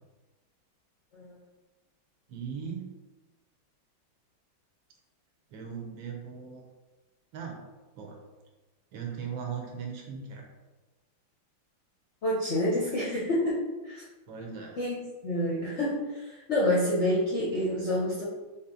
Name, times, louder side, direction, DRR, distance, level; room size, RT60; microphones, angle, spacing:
voice 1, 2.3-2.9 5.5-6.6 7.3-7.6 7.9-8.2 8.9-10.4 14.3-14.8, right 6 dB, 75° right, 1 dB, 1.5 m, -38 dB
voice 2, 12.2-14.0 14.8-14.9 15.2-18.3, left 1 dB, 65° left, -6 dB, 0.7 m, -28 dB
4.4 x 2.8 x 3.7 m, 1.2 s
omnidirectional pair, 2.3 m